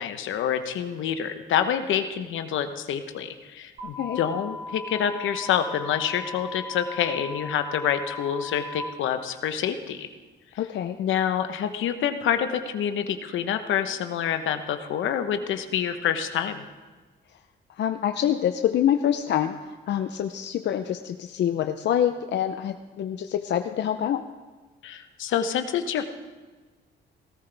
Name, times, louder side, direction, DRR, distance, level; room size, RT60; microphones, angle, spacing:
voice 1, 0.0-10.1 11.0-16.6 24.8-26.0, left 9 dB, 80° left, 8 dB, 1.0 m, -27 dB
sound 1, 3.8-8.8, left 3 dB, 30° right, 3.4 m, -38 dB
voice 2, 10.6-11.0 17.8-19.5 19.9-24.2, left 10 dB, 60° left, 7 dB, 0.6 m, -26 dB
18.0 x 13.5 x 3.4 m, 1.3 s
cardioid pair, 90°, 20 cm